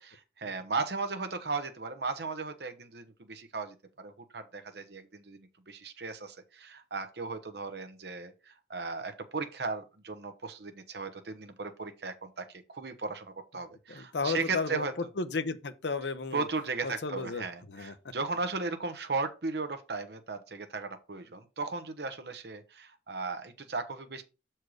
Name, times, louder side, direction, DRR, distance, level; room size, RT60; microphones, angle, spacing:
voice 1, 0.0-14.9 16.3-24.2, right 4 dB, 70° right, 0.9 m, -36 dB
voice 2, 13.9-14.9 15.2-16.5 16.8-18.1, left 4 dB, 80° left, 0.7 m, -34 dB
6.3 x 4.4 x 4.8 m
head